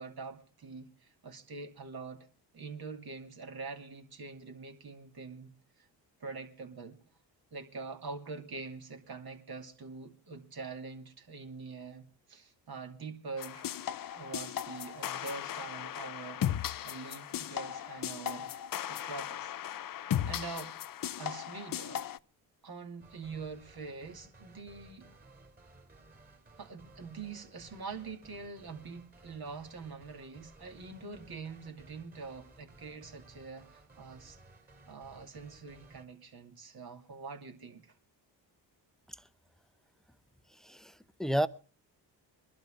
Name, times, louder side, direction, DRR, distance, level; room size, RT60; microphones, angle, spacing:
voice 1, 0.0-2.3 2.5-5.9 6.2-7.0 7.5-13.7 14.2-16.4 16.8-18.5 18.9-19.5 20.2-20.7 21.2-22.0 22.6-25.1 26.6-34.4 34.9-37.9, right 4 dB, 55° right, 2.7 m, -44 dB
sound 1, 13.4-22.2, left 11 dB, 50° left, 0.6 m, -37 dB
sound 2, 23.0-36.0, right 2 dB, 20° right, 2.8 m, -58 dB
voice 2, 40.6-41.5, equal, ahead, 0.8 m, -31 dB
22.0 x 12.0 x 3.8 m
cardioid pair, 65°, 45 cm